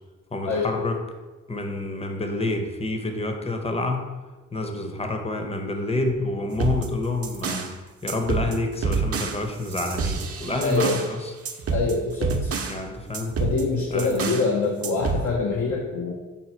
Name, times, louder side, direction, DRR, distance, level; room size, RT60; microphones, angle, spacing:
voice 1, 0.3-1.0 1.5-4.1 4.5-7.7 8.0-11.3 12.7-13.4 13.9-14.4, left 2 dB, 20° left, 4 dB, 0.7 m, -28 dB
sound 1, 6.5-7.7 8.1-11.1 11.4-12.8 13.1-14.5 14.8-15.3, right 4 dB, 50° right, 0.6 m, -28 dB
voice 2, 10.6-11.0 11.7-12.5 13.4-16.1, left 3 dB, 65° left, -1 dB, 0.7 m, -25 dB
5.5 x 2.2 x 4.3 m, 1.2 s
cardioid pair, 55°, 30 cm